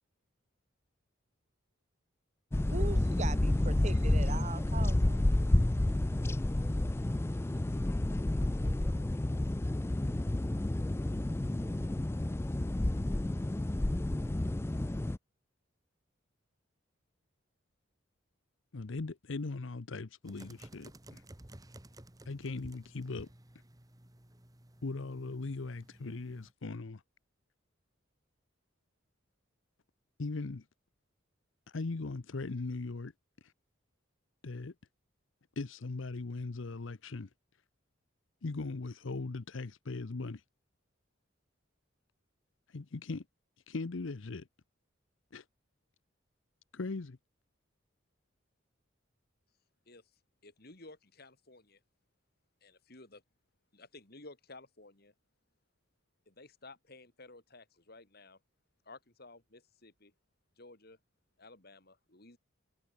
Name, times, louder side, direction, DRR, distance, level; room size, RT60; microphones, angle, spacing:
sound 1, 2.5-15.2, left 1 dB, 10° left, 0.3 m, -30 dB
voice 1, 2.7-5.3 6.3-6.5 7.3-7.6, right 3 dB, 35° right, 0.7 m, -41 dB
voice 2, 18.7-21.2 22.3-23.3 24.8-27.0 30.2-30.6 31.7-33.1 33.4-33.5 34.4-34.7 35.6-37.3 38.4-40.4 42.7-43.2 43.7-44.5 45.3-45.4 46.7-47.2, left 3 dB, 70° left, 0.8 m, -39 dB
sound 2, 20.2-26.5, right 1 dB, 20° right, 1.4 m, -54 dB
voice 3, 50.4-51.8 52.6-53.2 53.7-55.1 56.3-58.4 58.8-60.1 60.6-61.0 61.4-62.4, left 2 dB, 50° left, 3.2 m, -54 dB
head